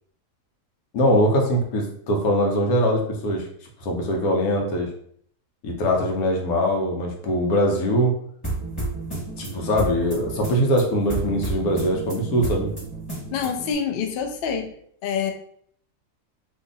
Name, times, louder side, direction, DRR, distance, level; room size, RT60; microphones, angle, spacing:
voice 1, 0.9-3.5 3.8-4.9 5.6-8.2 9.4-12.7, equal, 90° left, 1 dB, 1.2 m, -22 dB
sound 1, 8.4-13.7, right 2 dB, 15° left, 1.5 m, -31 dB
voice 2, 13.3-14.8 15.0-15.3, left 7 dB, 65° left, 4 dB, 0.6 m, -26 dB
2.7 x 2.5 x 3.9 m, 0.64 s
omnidirectional pair, 1.5 m